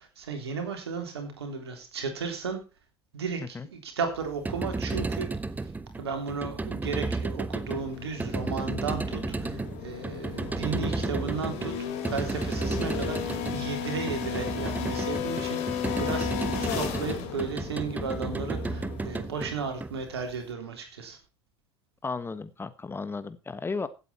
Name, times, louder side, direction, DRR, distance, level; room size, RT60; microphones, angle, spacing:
voice 1, 0.0-2.6 3.1-5.3 6.0-11.7 12.1-16.3 16.6-21.2, right 5 dB, 75° right, 5 dB, 3.5 m, -34 dB
sound 1, 4.2-20.4, right 3 dB, 10° right, 1.0 m, -33 dB
sound 2, 7.6-19.4, left 9 dB, 55° left, 3.1 m, -35 dB
voice 2, 22.0-23.9, left 4 dB, 15° left, 13 dB, 1.2 m, -34 dB
16.0 x 8.3 x 4.4 m, 0.31 s
figure-of-eight pair, 70°, 14 cm